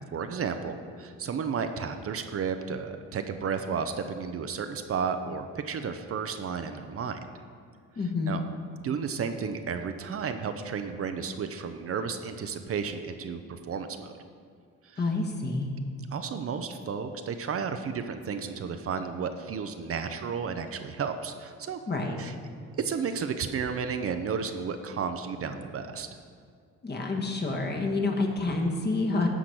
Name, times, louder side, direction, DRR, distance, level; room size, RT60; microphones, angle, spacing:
voice 1, 0.1-7.2 8.3-8.4 8.8-14.1 14.8-15.0 16.1-21.8 22.2-22.3 22.8-26.1, right 6 dB, 50° right, 8 dB, 0.6 m, -32 dB
voice 2, 8.0-8.4 15.0-15.7 21.9-22.2 26.8-29.3, left 3 dB, 35° left, 1 dB, 1.4 m, -28 dB
10.0 x 5.0 x 6.1 m, 2.3 s
cardioid pair, 90°, 30 cm